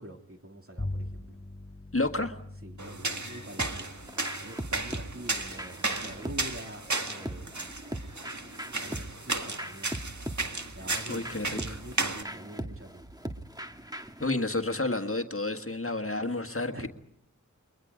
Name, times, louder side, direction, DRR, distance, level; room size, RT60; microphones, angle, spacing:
voice 1, 0.0-1.4 2.2-2.3 2.6-3.9 4.4-7.7 8.8-9.9 10.7-11.3 11.5-13.1 16.7-16.9, right 1 dB, 45° right, 3 dB, 2.7 m, -45 dB
Bowed string instrument, 0.8-6.4, left 1 dB, 25° left, 6.5 m, -42 dB
voice 2, 1.9-2.4 11.1-11.8 14.2-16.7, left 2 dB, 45° left, 6 dB, 1.7 m, -30 dB
sound 1, 2.8-12.2, right 3 dB, 65° right, 1.9 m, -34 dB
sound 2, 3.6-14.3, right 1 dB, 10° right, 1.5 m, -40 dB
30.0 x 23.0 x 5.1 m, 0.66 s
wide cardioid pair, 40°, 31 cm